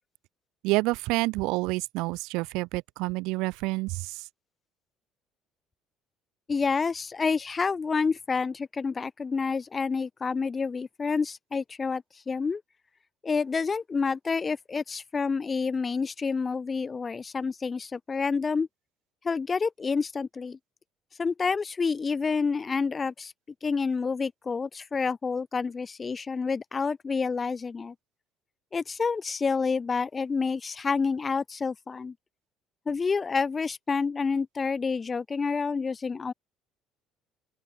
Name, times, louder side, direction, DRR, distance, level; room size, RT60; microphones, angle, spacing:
voice 1, 0.6-4.3, right 23 dB, 85° right, 2.1 m, -28 dB
voice 2, 6.5-12.6 13.2-18.7 19.2-20.6 21.2-23.3 23.6-27.9 28.7-32.1 32.8-36.3, left 5 dB, 25° left, 1.7 m, -28 dB
open air
cardioid pair, 130°, 0 cm